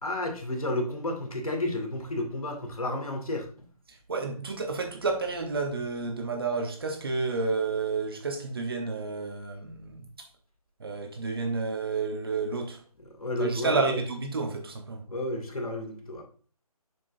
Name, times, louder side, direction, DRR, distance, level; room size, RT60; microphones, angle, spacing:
voice 1, 0.0-3.7 13.2-14.0 15.1-16.2, left 1 dB, 65° left, 2.3 m, -31 dB
voice 2, 3.9-10.3 10.8-12.8 13.4-15.0, right 4 dB, 40° right, 1.1 m, -30 dB
7.2 x 6.2 x 2.6 m
figure-of-eight pair, 155°, 19 cm